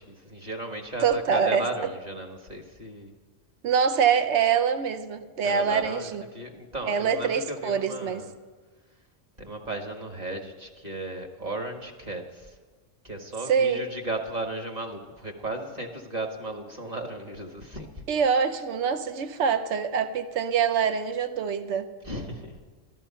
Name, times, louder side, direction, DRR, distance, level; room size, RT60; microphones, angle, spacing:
voice 1, 0.0-3.1 5.4-8.3 9.4-12.6 13.0-17.9 22.0-22.6, right 2 dB, 30° right, 3 dB, 1.6 m, -35 dB
voice 2, 1.0-1.6 3.6-6.2 6.9-8.2 13.5-13.8 18.1-21.9, right 6 dB, 65° right, 10 dB, 1.0 m, -24 dB
13.5 x 12.5 x 5.6 m, 1.4 s
omnidirectional pair, 1.3 m